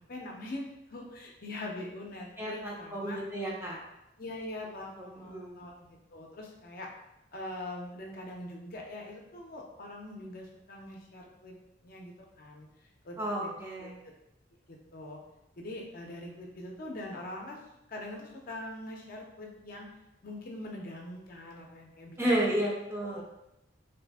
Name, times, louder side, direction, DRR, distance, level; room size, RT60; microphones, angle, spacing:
voice 1, 0.1-0.6 0.9-3.2 4.2-6.9 7.3-11.5 11.8-12.7 13.0-13.5 13.8-14.0 14.9-15.2 15.6-17.6 17.9-19.9 20.2-22.6 23.0-23.2, left 1 dB, 50° left, 0 dB, 0.6 m, -43 dB
voice 2, 2.4-3.8 5.0-5.6 13.2-14.0 22.2-23.2, right 1 dB, 15° right, -3 dB, 0.5 m, -32 dB
2.7 x 2.5 x 3.4 m, 0.88 s
head